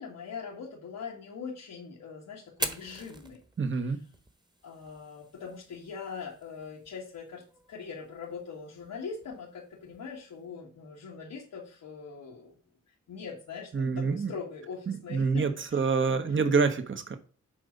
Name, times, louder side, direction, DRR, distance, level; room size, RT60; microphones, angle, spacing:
voice 1, 0.0-3.4 3.8-3.9 4.6-7.4 7.7-12.6 13.1-15.9, left 5 dB, 90° left, -4 dB, 1.6 m, -42 dB
Fire, 2.5-10.5, right 1 dB, 15° right, 1.2 m, -44 dB
voice 2, 3.6-4.0 13.7-14.3 14.9-17.2, right 5 dB, 40° right, 9 dB, 1.0 m, -27 dB
7.5 x 4.1 x 5.2 m, 0.40 s
cardioid pair, 70°, 31 cm